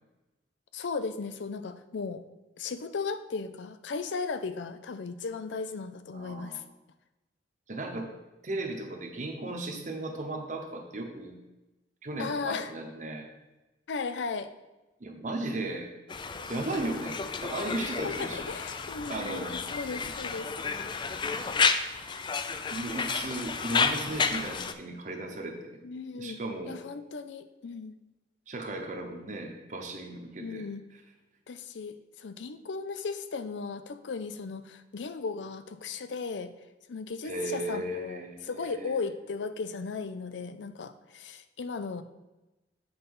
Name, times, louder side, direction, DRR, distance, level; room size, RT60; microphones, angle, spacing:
voice 1, 0.7-2.2 2.6-6.6 12.2-12.7 13.9-14.5 18.0-20.5 25.8-26.4 26.7-28.0 30.4-30.8 31.5-36.5 36.9-42.0, left 4 dB, 85° left, 11 dB, 0.5 m, -36 dB
voice 2, 6.1-6.6 7.7-8.1 8.4-11.4 12.0-13.3 15.0-15.9 16.5-18.5 19.1-19.5 22.7-25.8 26.2-26.8 28.5-30.7 37.2-39.0, right 2 dB, 45° right, 2 dB, 0.9 m, -36 dB
Conversation, 16.1-24.7, left 5 dB, 25° left, 0.3 m, -31 dB
7.9 x 4.0 x 5.4 m, 1.0 s
head